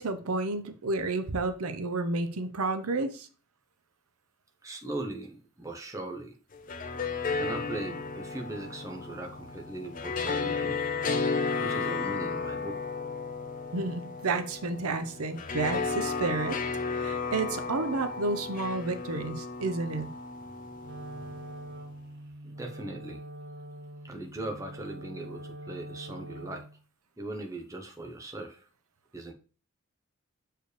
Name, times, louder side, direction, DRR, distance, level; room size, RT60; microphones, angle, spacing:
voice 1, 0.0-3.3 13.7-16.6 16.9-20.1, right 3 dB, 85° right, 10 dB, 0.7 m, -31 dB
voice 2, 4.6-6.3 7.3-10.8 11.6-12.9 22.4-23.2 24.0-26.7 27.2-28.7 29.1-29.3, right 2 dB, 15° right, 2 dB, 0.8 m, -39 dB
sound 1, 6.5-21.7, left 4 dB, 40° left, 0.6 m, -34 dB
Wind instrument woodwind instrument, 20.8-26.8, right 1 dB, 50° right, 0.8 m, -44 dB
6.6 x 4.6 x 3.3 m, 0.37 s
head